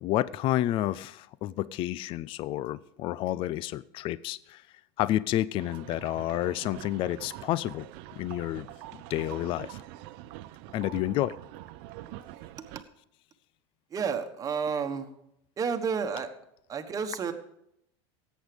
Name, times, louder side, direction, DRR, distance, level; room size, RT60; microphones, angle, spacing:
voice 1, 0.0-4.6 5.0-7.9 8.1-8.7 9.1-9.8 10.7-11.3, left 14 dB, 35° left, 19 dB, 0.4 m, -30 dB
sound 1, 5.6-12.8, right 15 dB, 60° right, 0.7 m, -45 dB
voice 2, 13.9-15.1 15.6-16.3 16.7-17.3, right 6 dB, 25° right, 7 dB, 1.3 m, -30 dB
17.5 x 8.2 x 5.2 m, 0.78 s
supercardioid pair, 140°, 15 cm